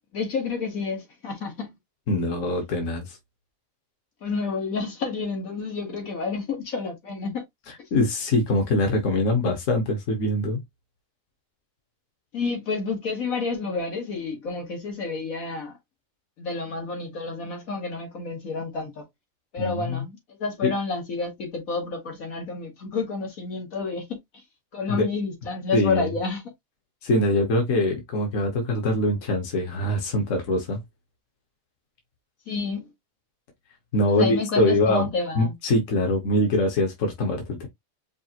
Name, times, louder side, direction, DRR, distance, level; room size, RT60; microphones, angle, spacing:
voice 1, 0.1-1.7 4.2-7.4 12.3-15.7 16.4-19.1 19.5-24.2 24.7-26.4 32.5-32.9 34.1-35.6, left 4 dB, 85° left, 2.0 m, -29 dB
voice 2, 2.1-3.2 7.7-10.6 19.6-20.0 20.6-20.7 24.9-25.1 25.7-26.1 27.0-30.8 33.9-37.7, left 1 dB, 65° left, 1.5 m, -23 dB
5.3 x 2.5 x 2.9 m
omnidirectional pair, 1.4 m